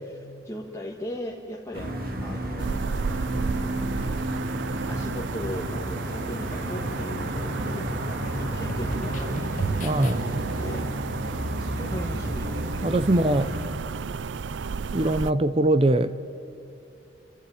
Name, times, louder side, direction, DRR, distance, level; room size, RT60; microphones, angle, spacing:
voice 1, 0.0-3.7 4.5-13.1, left 1 dB, 15° left, -3 dB, 1.8 m, -39 dB
sound 1, 1.7-13.7, equal, 50° right, 2.3 m, -32 dB
sound 2, 2.6-15.3, right 5 dB, 75° right, 0.5 m, -32 dB
sound 3, 6.9-10.6, left 1 dB, 45° left, 2.1 m, -38 dB
voice 2, 9.8-10.2 12.8-13.5 14.9-16.1, right 1 dB, 30° right, 12 dB, 0.6 m, -22 dB
29.5 x 13.0 x 9.1 m, 2.6 s
head